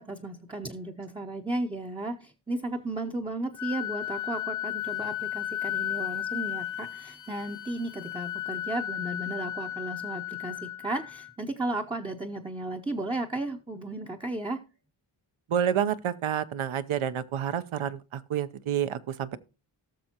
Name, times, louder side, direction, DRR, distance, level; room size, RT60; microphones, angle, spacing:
voice 1, 0.0-14.6, right 2 dB, 10° right, 0.6 m, -34 dB
Wind instrument woodwind instrument, 3.6-11.3, left 12 dB, 40° left, 0.7 m, -34 dB
voice 2, 15.5-19.4, right 9 dB, 75° right, 0.8 m, -29 dB
18.0 x 6.5 x 2.8 m
wide cardioid pair, 110°, 50 cm